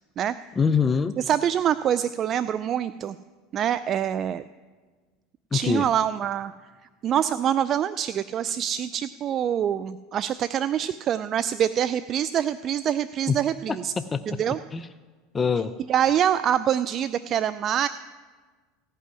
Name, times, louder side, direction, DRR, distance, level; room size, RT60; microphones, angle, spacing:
voice 1, 0.6-1.1 5.5-5.9 13.3-13.4 13.7-14.4 14.7-14.9 15.3-15.7, left 5 dB, 25° left, 13 dB, 0.5 m, -24 dB
voice 2, 1.2-3.2 3.5-4.4 5.5-6.5 7.0-13.9 14.3-14.6 15.9-17.9, right 9 dB, 40° right, 14 dB, 0.3 m, -25 dB
15.5 x 5.5 x 9.9 m, 1.4 s
hypercardioid pair, 100°, 0 cm